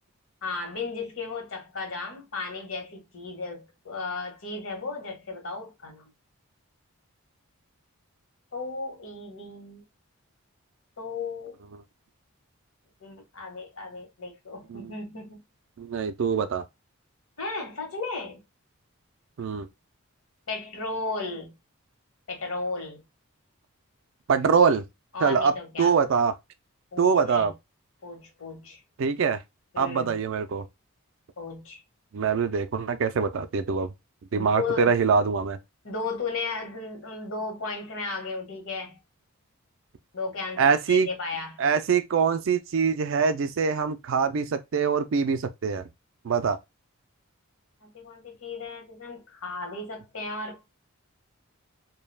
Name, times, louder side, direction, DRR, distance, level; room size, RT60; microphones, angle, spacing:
voice 1, 0.4-6.1 8.5-9.8 11.0-11.6 13.0-15.4 17.4-18.4 20.5-21.5 22.3-23.0 25.1-25.9 26.9-27.5 28.0-28.8 29.7-30.1 31.4-31.8 34.3-34.9 35.8-39.0 40.1-41.6 47.8-50.7, left 3 dB, 65° left, 0.9 m, -35 dB
voice 2, 15.8-16.6 19.4-19.7 24.3-24.8 25.2-25.5 25.8-26.3 27.0-27.5 29.0-29.4 29.8-30.6 32.1-33.9 34.3-35.6 40.6-41.1 41.6-45.9 46.2-46.6, right 6 dB, 60° right, 0.3 m, -24 dB
2.3 x 2.2 x 3.2 m
head